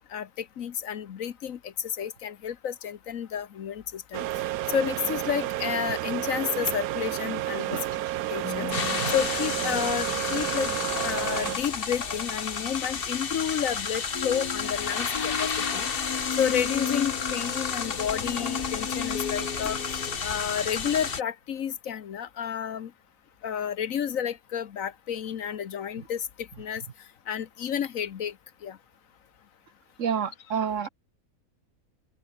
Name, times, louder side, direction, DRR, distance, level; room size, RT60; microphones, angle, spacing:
voice 1, 0.1-4.3 4.7-7.8 8.3-8.7 9.1-10.7 11.0-15.9 16.4-19.8 20.2-22.9 23.4-26.8 27.3-28.3 28.6-28.8, left 8 dB, 65° left, 1.3 m, -31 dB
sound 1, 4.1-11.6, right 14 dB, 75° right, 1.0 m, -31 dB
sound 2, 8.4-11.6 14.1-20.2, left 7 dB, 85° left, 2.0 m, -36 dB
sound 3, 8.7-21.2, left 6 dB, 40° left, 1.4 m, -31 dB
voice 2, 8.8-9.1 30.0-30.9, right 7 dB, 55° right, 1.5 m, -29 dB
omnidirectional pair, 1.6 m